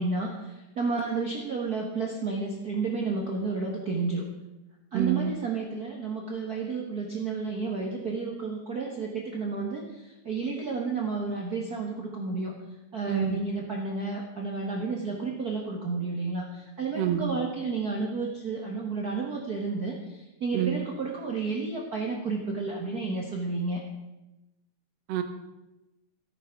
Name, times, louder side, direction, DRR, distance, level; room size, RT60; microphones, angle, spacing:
voice 1, 0.0-4.3 4.9-12.5 12.9-23.8, right 4 dB, 45° right, 0 dB, 1.3 m, -31 dB
voice 2, 4.9-5.3 13.1-13.4 17.0-17.3 20.5-20.8 25.1-25.2, right 10 dB, 65° right, 7 dB, 2.0 m, -27 dB
14.0 x 9.0 x 5.9 m, 1.0 s
omnidirectional pair, 3.3 m